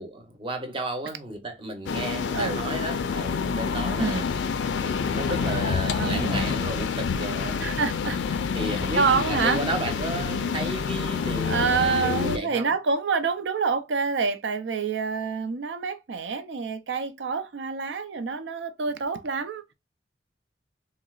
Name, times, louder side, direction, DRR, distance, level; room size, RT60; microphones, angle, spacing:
voice 1, 0.0-4.3 4.8-7.6 8.5-12.7, right 2 dB, 30° right, 0.7 m, -33 dB
sound 1, 1.9-12.4, left 5 dB, 85° left, 0.4 m, -27 dB
voice 2, 5.3-6.5 7.6-8.2 8.9-9.7 11.4-19.7, right 5 dB, 85° right, 0.5 m, -27 dB
3.8 x 2.0 x 2.3 m
head